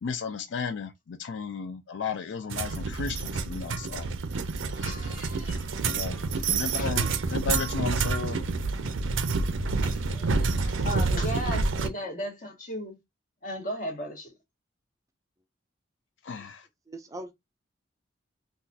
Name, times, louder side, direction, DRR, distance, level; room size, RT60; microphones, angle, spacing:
voice 1, 0.0-4.1 5.8-6.2 6.5-8.4 16.2-16.7, left 5 dB, 70° left, 0.4 m, -34 dB
sound 1, 2.5-11.9, right 4 dB, 85° right, 0.5 m, -28 dB
voice 2, 4.3-5.7 6.3-7.1 9.8-12.9 13.4-14.3, equal, 45° left, 1.3 m, -37 dB
voice 3, 6.5-7.1 10.7-11.6 16.9-17.3, right 1 dB, 15° right, 0.4 m, -43 dB
3.9 x 2.3 x 2.6 m
head